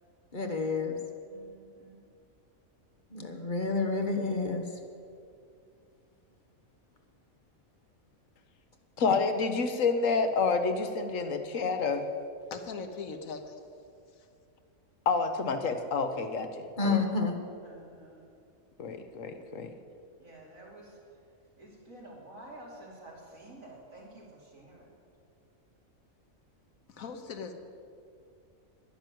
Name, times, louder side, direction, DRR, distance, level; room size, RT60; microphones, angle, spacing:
voice 1, 0.3-1.0 3.1-4.6 16.8-17.3, left 3 dB, 40° left, 1.3 m, -29 dB
voice 2, 1.3-2.0 17.6-18.2 20.2-21.2 21.6-24.9, right 1 dB, 75° right, 3.2 m, -50 dB
voice 3, 9.0-12.1 15.1-17.0 18.8-19.7, left 4 dB, 70° left, 1.3 m, -29 dB
voice 4, 12.5-13.6 14.1-14.3 26.9-27.5, left 5 dB, 85° left, 1.5 m, -40 dB
10.5 x 10.0 x 7.6 m
omnidirectional pair, 1.4 m